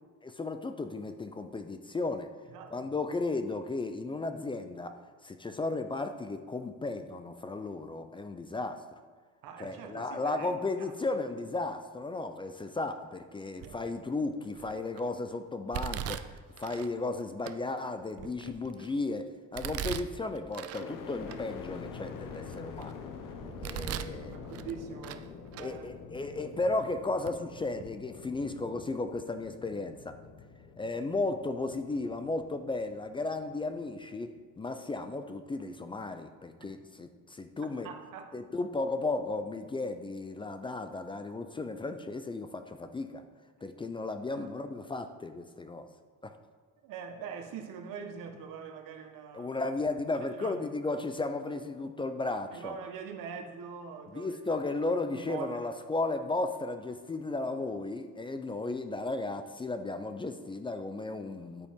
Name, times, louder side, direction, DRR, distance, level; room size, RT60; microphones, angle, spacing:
voice 1, 0.2-2.3 2.7-8.9 9.6-23.0 23.6-24.3 25.6-30.2 30.8-37.9 38.3-43.2 43.6-45.9 46.2-46.3 49.3-52.8 54.1-61.7, left 3 dB, 15° left, 8 dB, 0.4 m, -35 dB
voice 2, 2.5-2.9 9.4-10.5 10.8-10.9 23.8-25.8 36.6-36.7 37.8-38.3 44.3-44.5 46.8-49.6 50.4-50.6 52.5-54.4 55.1-55.6, right 6 dB, 85° right, 5 dB, 1.3 m, -43 dB
Domestic sounds home sounds, 13.6-14.0 14.6-15.0 15.7-16.9 17.5-17.6 18.1-18.9 19.5-20.9 21.3-21.4 22.0-22.9 23.4-24.2 24.5-25.3 25.5-25.7 26.5-26.6 27.2-27.4 27.7-27.9, right 11 dB, 50° right, 0.5 m, -39 dB
sound 1, 20.7-34.7 35.2-36.0, left 6 dB, 80° left, 0.9 m, -46 dB
9.8 x 8.8 x 3.6 m, 1.5 s
cardioid pair, 155°, 32 cm